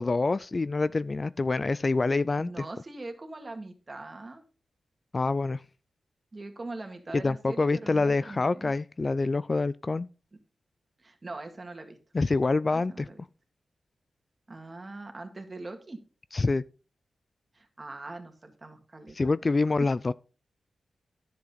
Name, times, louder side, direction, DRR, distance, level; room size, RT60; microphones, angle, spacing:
voice 1, 0.0-2.7 5.1-5.6 7.1-10.1 12.1-13.1 16.3-16.6 19.2-20.1, left 3 dB, 40° left, 0.4 m, -26 dB
voice 2, 2.4-4.4 6.3-8.7 11.0-12.0 12.6-13.2 14.5-16.0 17.5-19.3, right 2 dB, 35° right, 2.1 m, -42 dB
10.5 x 7.6 x 4.0 m
cardioid pair, 60°, 0 cm